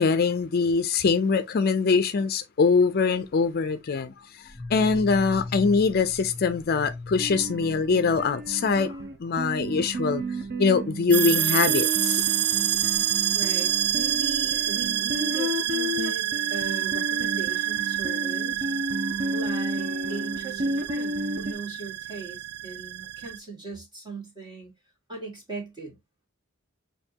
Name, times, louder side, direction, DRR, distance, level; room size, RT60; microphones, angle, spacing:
voice 1, 0.0-4.4 4.7-10.2 10.6-12.3, left 4 dB, 45° left, 0.4 m, -23 dB
sound 1, 4.4-8.9 9.3-9.4 9.7-10.0 10.3-10.6 11.3-11.4 12.3-15.5, left 2 dB, 10° left, 0.9 m, -41 dB
sound 2, 7.2-21.5, equal, 45° right, 0.6 m, -32 dB
sound 3, 11.1-23.4, right 12 dB, 85° right, 0.4 m, -27 dB
voice 2, 13.3-18.7 19.3-24.7 25.1-26.0, right 4 dB, 20° right, 1.9 m, -38 dB
6.6 x 2.6 x 2.8 m
head